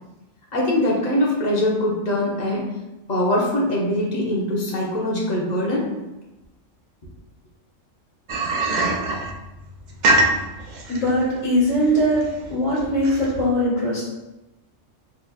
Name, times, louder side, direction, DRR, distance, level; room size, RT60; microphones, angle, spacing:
voice 1, 0.5-2.7 3.1-5.8, left 1 dB, 40° left, -3 dB, 0.9 m, -22 dB
sound 1, 8.3-13.4, right 2 dB, 65° right, 0.4 m, -23 dB
voice 2, 10.9-12.2 12.5-14.0, equal, 85° left, -9 dB, 1.9 m, -21 dB
4.4 x 3.4 x 2.3 m, 0.99 s
omnidirectional pair, 1.3 m